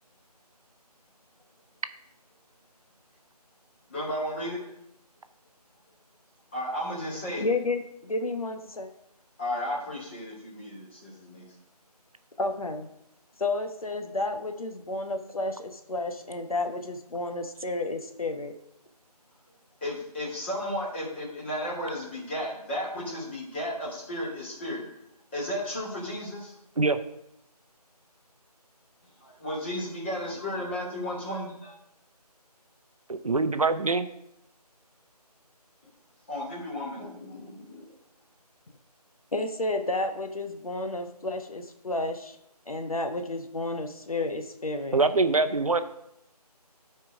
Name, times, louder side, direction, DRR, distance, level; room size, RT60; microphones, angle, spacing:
voice 1, 3.9-4.6 6.5-7.5 9.4-11.4 19.8-24.8 25.3-26.5 29.2-31.7 36.3-37.8, left 1 dB, 15° left, -5 dB, 2.2 m, -34 dB
voice 2, 7.4-8.9 12.4-12.9 13.4-18.5 39.3-42.4 42.7-45.0, left 2 dB, 60° left, 6 dB, 1.0 m, -31 dB
voice 3, 33.1-34.1 44.9-45.8, right 3 dB, 60° right, 10 dB, 0.7 m, -24 dB
11.5 x 4.6 x 5.0 m, 0.78 s
figure-of-eight pair, 170°, 21 cm